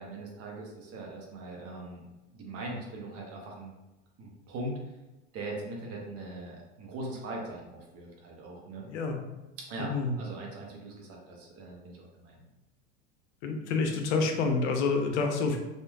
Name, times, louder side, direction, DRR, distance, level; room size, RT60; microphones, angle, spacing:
voice 1, 0.0-3.7 4.2-4.8 5.3-8.8 9.6-12.5, right 2 dB, 40° right, -1 dB, 0.9 m, -41 dB
voice 2, 8.9-9.2 9.8-10.2 13.4-15.6, left 4 dB, 65° left, 4 dB, 0.6 m, -28 dB
3.0 x 2.5 x 2.3 m, 1.1 s
hypercardioid pair, 85°, 37 cm